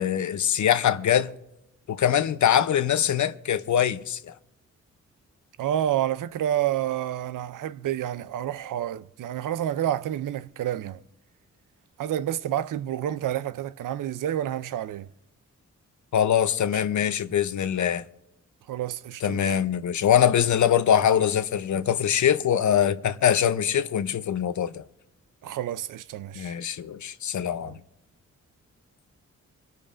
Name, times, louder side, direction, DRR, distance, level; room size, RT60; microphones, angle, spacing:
voice 1, 0.0-1.3 1.9-4.3 16.1-18.0 19.2-24.8 26.4-27.8, left 9 dB, 70° left, 0.7 m, -23 dB
voice 2, 5.6-11.0 12.0-15.1 16.7-16.8 18.7-19.6 25.4-26.6 27.6-27.8, right 11 dB, 85° right, 0.5 m, -29 dB
24.0 x 12.0 x 2.5 m
cardioid pair, 75°, 31 cm